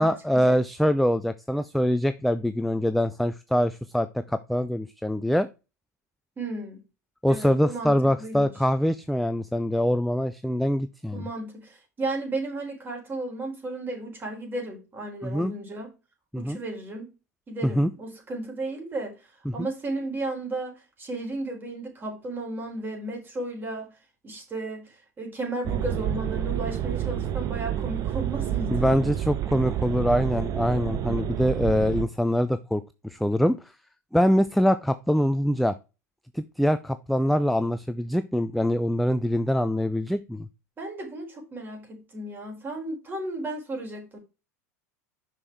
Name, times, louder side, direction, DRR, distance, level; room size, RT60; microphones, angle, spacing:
voice 1, 0.0-5.5 7.2-11.3 15.2-15.5 16.3-16.6 17.6-17.9 19.5-19.7 28.7-33.7 34.1-35.8 36.3-40.5, equal, ahead, 0.5 m, -24 dB
voice 2, 6.4-6.8 7.3-8.5 11.1-15.9 16.3-17.1 17.5-19.1 19.5-23.9 24.2-28.8 40.8-44.2, right 2 dB, 25° right, 4.2 m, -34 dB
sound 1, 25.6-32.0, right 11 dB, 40° right, 1.0 m, -29 dB
6.1 x 6.0 x 4.7 m
hypercardioid pair, 90°, 9 cm